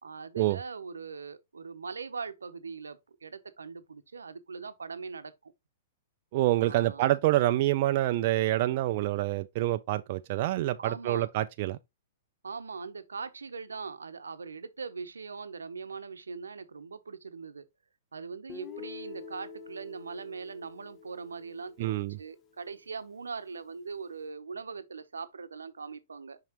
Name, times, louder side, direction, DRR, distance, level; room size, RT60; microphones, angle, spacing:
voice 1, 0.0-5.5 6.6-7.1 10.8-11.3 12.4-17.6 18.1-26.4, right 5 dB, 80° right, 0.8 m, -41 dB
voice 2, 6.3-11.8 21.8-22.2, right 15 dB, 50° right, 0.4 m, -27 dB
Guitar, 18.5-22.5, left 5 dB, 30° left, 1.0 m, -46 dB
5.9 x 5.6 x 3.0 m
hypercardioid pair, 110°, 0 cm